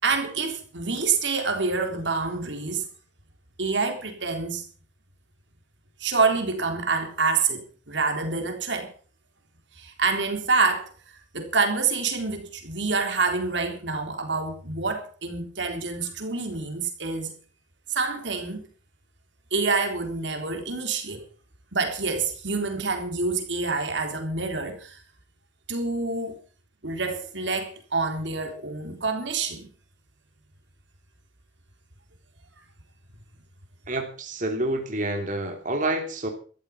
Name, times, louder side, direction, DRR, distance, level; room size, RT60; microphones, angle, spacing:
voice 1, 0.0-2.9 3.6-4.7 6.0-8.9 9.8-10.9 11.3-17.3 17.9-18.7 19.5-21.2 21.7-25.0 25.7-26.4 26.8-29.7, right 4 dB, 80° right, 3.7 m, -27 dB
voice 2, 33.9-36.3, right 1 dB, 45° right, 2.9 m, -28 dB
14.0 x 12.5 x 5.9 m
head